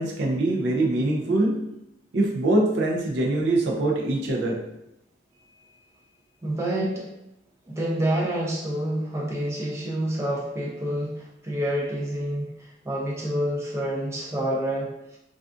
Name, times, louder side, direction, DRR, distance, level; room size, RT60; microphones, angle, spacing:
voice 1, 0.0-1.6 2.1-4.6, right 2 dB, 65° right, -1 dB, 0.4 m, -23 dB
voice 2, 6.4-7.1 7.7-15.2, right 1 dB, 15° right, -5 dB, 0.5 m, -28 dB
2.4 x 2.3 x 2.4 m, 0.85 s
head